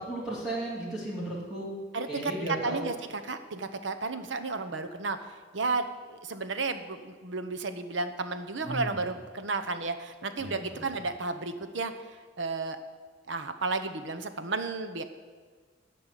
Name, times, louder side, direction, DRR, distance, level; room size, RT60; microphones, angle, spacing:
voice 1, 0.0-1.7 2.1-2.9 8.6-9.0 10.4-10.8, right 1 dB, 5° right, -7 dB, 2.4 m, -35 dB
voice 2, 1.9-2.9 3.3-5.2 5.5-12.8 13.3-15.0, right 3 dB, 70° right, 9 dB, 0.9 m, -33 dB
12.5 x 5.6 x 8.3 m, 1.5 s
head